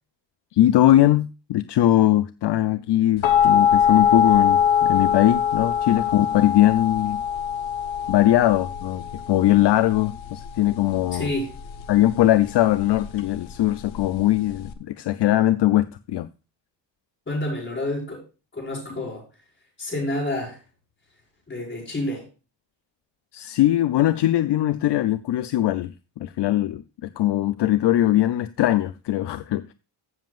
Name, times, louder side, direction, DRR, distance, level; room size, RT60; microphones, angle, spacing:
voice 1, 0.5-7.2 8.1-11.3 11.9-16.3 23.3-25.9 26.2-29.7, left 14 dB, 65° left, 0.6 m, -20 dB
sound 1, 3.2-14.7, left 8 dB, 85° left, 1.3 m, -23 dB
voice 2, 11.1-11.5 17.3-18.2 18.5-19.2 19.8-20.6 21.5-22.3, left 1 dB, 25° left, 5.4 m, -28 dB
15.0 x 7.4 x 2.4 m
wide cardioid pair, 145°, 45 cm